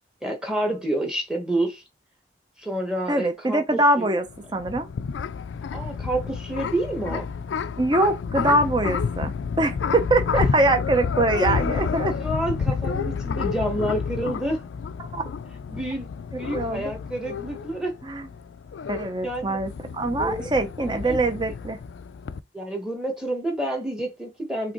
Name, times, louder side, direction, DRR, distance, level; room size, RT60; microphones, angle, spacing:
voice 1, 0.2-1.8 2.6-4.1 5.7-7.3 12.2-14.6 15.7-16.1 16.4-17.9 19.2-19.6 20.2-20.5 21.1-21.2 22.5-24.7, right 1 dB, 5° right, 1.2 m, -28 dB
voice 2, 3.1-4.2 4.5-4.9 7.8-12.2 15.1-15.2 16.5-16.8 18.0-18.3 18.9-21.8, right 2 dB, 25° right, 0.7 m, -23 dB
sound 1, 4.3-22.4, left 6 dB, 90° left, 0.4 m, -30 dB
4.9 x 3.4 x 3.0 m
head